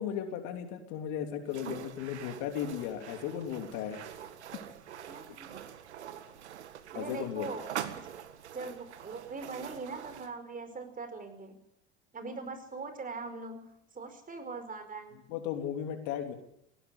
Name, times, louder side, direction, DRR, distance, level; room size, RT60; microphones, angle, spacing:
voice 1, 0.0-4.0 6.9-7.5 15.3-16.3, left 9 dB, 60° left, 6 dB, 3.2 m, -36 dB
sound 1, 1.5-10.3, right 10 dB, 80° right, 1.8 m, -44 dB
voice 2, 5.1-5.6 6.9-7.6 7.9-8.1 8.5-11.6 12.1-15.2, right 4 dB, 25° right, 9 dB, 5.0 m, -41 dB
18.0 x 17.5 x 8.3 m, 0.75 s
hypercardioid pair, 85°, 33 cm